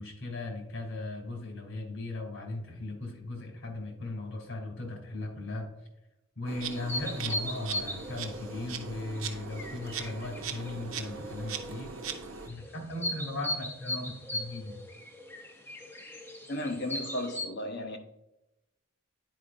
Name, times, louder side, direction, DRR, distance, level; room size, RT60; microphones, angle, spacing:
voice 1, 0.0-5.7 6.4-11.9 12.5-14.8, left 2 dB, 75° left, 2.6 m, -37 dB
Insect, 6.5-12.5, right 6 dB, 80° right, 0.8 m, -40 dB
sound 1, 6.7-17.5, left 1 dB, 10° left, 0.6 m, -39 dB
voice 2, 16.5-18.0, left 1 dB, 55° left, 0.9 m, -34 dB
9.9 x 5.0 x 2.5 m
head